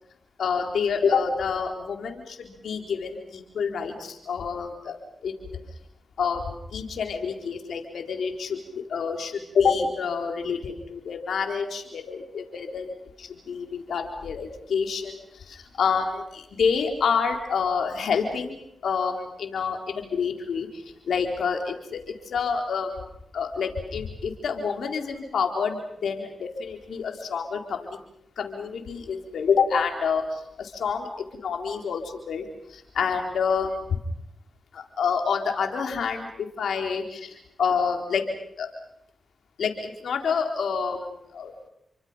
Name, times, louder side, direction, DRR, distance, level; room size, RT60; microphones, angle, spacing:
voice 1, 0.4-5.0 5.2-5.6 6.2-12.9 13.2-23.0 23.3-28.0 28.4-33.8 34.7-38.2 38.6-38.7 39.6-41.5, left 6 dB, 80° left, 3 dB, 4.2 m, -28 dB
29.5 x 24.5 x 5.8 m, 0.78 s
cardioid pair, 50°, 0 cm